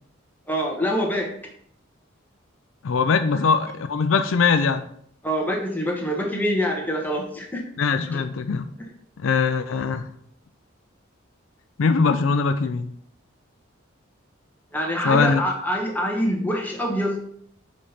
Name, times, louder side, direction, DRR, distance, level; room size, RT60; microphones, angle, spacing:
voice 1, 0.5-1.3 5.2-7.6 8.1-8.2 14.7-17.2, equal, 10° left, 0 dB, 1.2 m, -25 dB
voice 2, 2.8-4.9 7.8-8.7 9.2-10.1 11.8-12.9 15.0-15.4, left 5 dB, 70° left, 10 dB, 0.4 m, -21 dB
5.1 x 4.1 x 5.7 m, 0.66 s
head